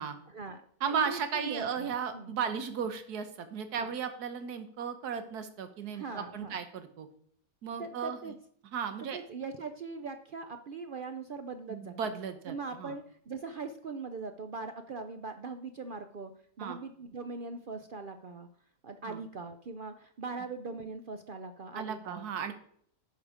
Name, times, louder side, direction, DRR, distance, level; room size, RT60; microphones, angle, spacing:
voice 1, 0.3-0.6 0.9-2.3 3.8-3.9 5.9-6.6 7.8-8.4 9.1-11.9 12.5-16.3 16.6-18.5 18.8-22.2, right 4 dB, 60° right, 8 dB, 0.5 m, -41 dB
voice 2, 0.8-7.1 7.6-8.3 8.7-9.2 11.7-13.0 16.6-16.8 19.0-19.2 21.7-22.5, right 6 dB, 85° right, 9 dB, 1.5 m, -35 dB
11.0 x 5.7 x 5.0 m, 0.62 s
omnidirectional pair, 1.6 m